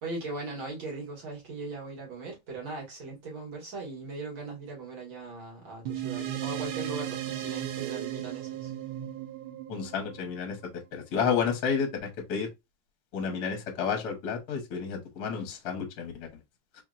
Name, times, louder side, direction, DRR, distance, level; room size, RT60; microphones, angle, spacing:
voice 1, 0.0-8.7, right 3 dB, 75° right, 2.5 m, -39 dB
sound 1, 5.9-10.7, right 12 dB, 90° right, 1.4 m, -36 dB
voice 2, 9.7-10.6 10.9-12.5 13.1-16.3, left 6 dB, 60° left, 1.3 m, -31 dB
4.3 x 2.8 x 2.4 m
omnidirectional pair, 2.2 m